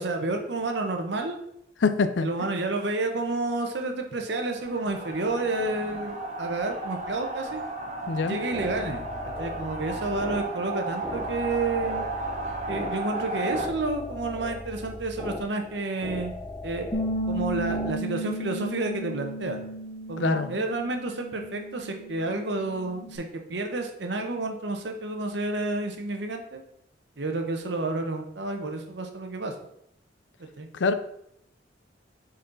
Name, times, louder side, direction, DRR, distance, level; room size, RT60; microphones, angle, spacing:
voice 1, 0.0-1.4 2.2-7.6 8.3-9.0 9.4-12.1 12.7-16.3 16.6-19.6 20.1-26.6 27.2-29.5 30.4-30.7, right 2 dB, 70° right, 4 dB, 1.0 m, -30 dB
voice 2, 1.8-2.3 8.1-8.4 20.2-20.5 30.7-30.9, left 4 dB, 80° left, 11 dB, 0.5 m, -24 dB
sound 1, 4.6-13.7, right 2 dB, 40° right, 1.0 m, -34 dB
sound 2, 8.1-17.9, left 2 dB, 5° left, 0.6 m, -38 dB
Bass guitar, 16.9-23.2, right 1 dB, 40° left, 1.8 m, -34 dB
6.9 x 4.2 x 4.0 m, 0.75 s
head